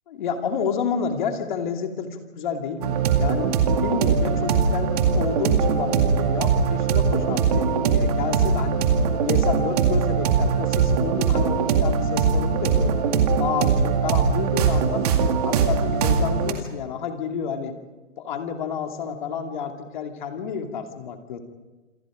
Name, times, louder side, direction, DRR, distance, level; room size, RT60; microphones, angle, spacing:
voice 1, 0.1-3.5 3.8-8.8 9.2-13.0 13.4-15.0 15.4-17.7 18.2-21.4, left 6 dB, 35° left, 4 dB, 2.8 m, -30 dB
sound 1, 2.8-16.5, right 6 dB, 30° right, 2.1 m, -21 dB
28.0 x 24.0 x 5.1 m, 1.2 s
hypercardioid pair, 165°, 39 cm